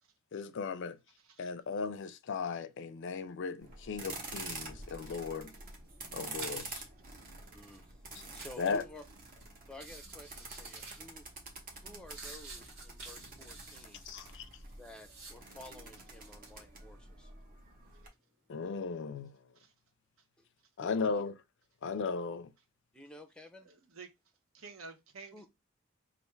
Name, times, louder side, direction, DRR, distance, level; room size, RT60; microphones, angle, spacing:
voice 1, 0.3-1.0 1.4-5.5 6.1-6.8 8.6-8.8 14.1-14.5 18.5-19.4 20.8-21.3 21.8-22.5, left 5 dB, 60° left, 0.4 m, -36 dB
sound 1, 3.6-18.1, right 3 dB, 40° right, 1.1 m, -47 dB
sound 2, 5.2-7.0 7.5-7.8 8.4-8.7 9.3-9.4 9.7-11.3 11.7-15.6 16.0-16.6, right 3 dB, 60° right, 1.7 m, -51 dB
voice 2, 7.5-8.0 8.3-9.0 9.7-11.3 11.8-14.0 14.7-17.3 20.4-20.5 20.8-21.2 22.9-23.7 25.3-25.5, left 1 dB, 5° left, 0.5 m, -52 dB
voice 3, 23.6-24.1 24.5-25.5, right 4 dB, 80° right, 0.8 m, -50 dB
3.3 x 2.5 x 4.4 m
head